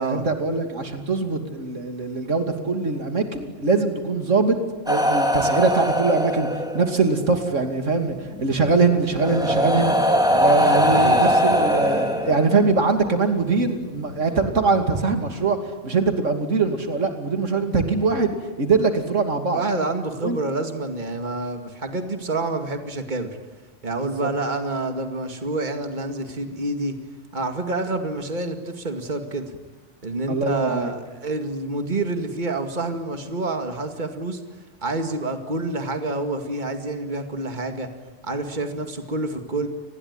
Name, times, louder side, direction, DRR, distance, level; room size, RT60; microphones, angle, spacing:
voice 1, 0.0-4.6 4.9-6.5 6.7-10.0 10.3-15.6 15.8-19.6 20.2-20.4 24.0-24.3 30.3-30.9, right 4 dB, 90° right, 6 dB, 3.0 m, -22 dB
sound 1, 4.9-7.0 8.3-8.4 9.2-12.8 13.8-14.0, equal, 5° right, 3.4 m, -21 dB
voice 2, 10.9-11.3 19.5-23.4 23.8-26.9 27.3-29.6 30.0-34.4 34.8-37.9 38.2-39.7, right 2 dB, 40° right, 6 dB, 2.3 m, -28 dB
29.0 x 20.5 x 9.8 m, 1.2 s
omnidirectional pair, 1.2 m